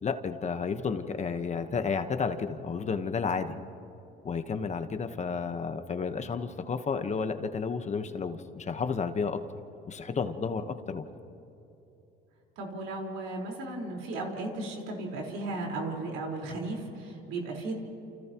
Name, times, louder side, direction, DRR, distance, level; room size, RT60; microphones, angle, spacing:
voice 1, 0.0-3.6 4.2-9.4 9.9-11.0, left 5 dB, 35° left, 8 dB, 1.3 m, -31 dB
voice 2, 12.6-17.7, right 2 dB, 80° right, 0 dB, 4.7 m, -35 dB
29.5 x 29.0 x 3.1 m, 2.9 s
cardioid pair, 100°, 20 cm